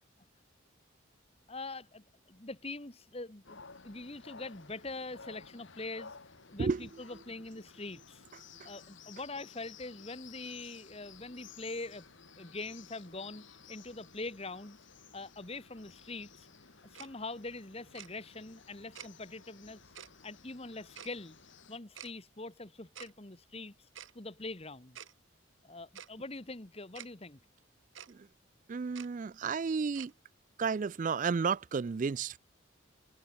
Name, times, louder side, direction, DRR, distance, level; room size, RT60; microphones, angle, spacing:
voice 1, 1.5-3.6 3.8-6.1 6.5-8.2 8.6-12.1 12.4-14.8 15.1-16.5 16.8-19.9 20.2-21.4 21.7-23.9 24.1-25.0 25.6-27.4, left 2 dB, 30° left, 1.5 m, -43 dB
sound 1, 3.4-21.8, left 6 dB, 65° left, 1.6 m, -55 dB
Tick-tock, 16.9-17.1 17.9-18.1 18.9-19.1 19.9-20.1 20.9-21.1 21.9-22.1 22.9-23.1 23.9-24.1 24.9-25.1 25.9-26.1 26.9-27.1 27.9-28.1 28.9-29.1 29.9-30.1, right 9 dB, 65° right, 1.6 m, -47 dB
voice 2, 28.7-30.1 30.6-32.4, right 5 dB, 40° right, 0.3 m, -32 dB
open air
head